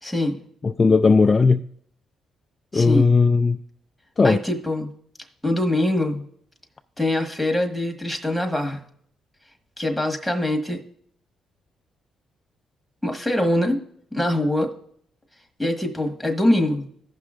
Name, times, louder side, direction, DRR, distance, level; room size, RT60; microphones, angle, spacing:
voice 1, 0.0-0.4 2.7-3.1 4.2-4.9 5.4-6.2 7.0-8.8 9.8-10.8 13.0-13.8 14.1-14.7 15.6-16.9, left 1 dB, ahead, 1.4 m, -23 dB
voice 2, 0.6-1.6 2.7-3.6 4.2-4.4, left 4 dB, 30° left, 0.3 m, -17 dB
15.5 x 5.7 x 2.5 m
cardioid pair, 90°, 0 cm